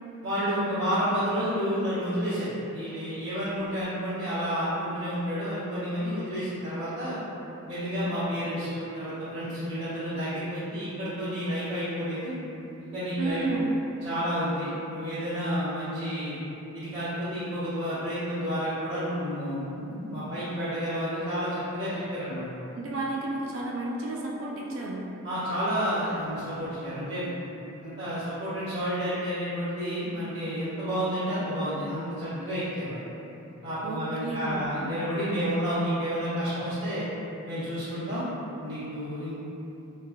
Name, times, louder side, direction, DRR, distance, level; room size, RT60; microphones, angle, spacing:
voice 1, 0.2-7.2 7.7-12.3 12.8-13.6 14.0-16.4 16.7-22.4 25.2-27.3 27.8-33.0 33.6-37.1 37.4-38.2 38.6-39.3, equal, 80° right, -17 dB, 1.0 m, -30 dB
voice 2, 13.2-13.8 22.7-25.1 33.8-34.7, right 2 dB, 60° right, -2 dB, 0.3 m, -31 dB
3.2 x 2.1 x 2.2 m, 2.9 s
head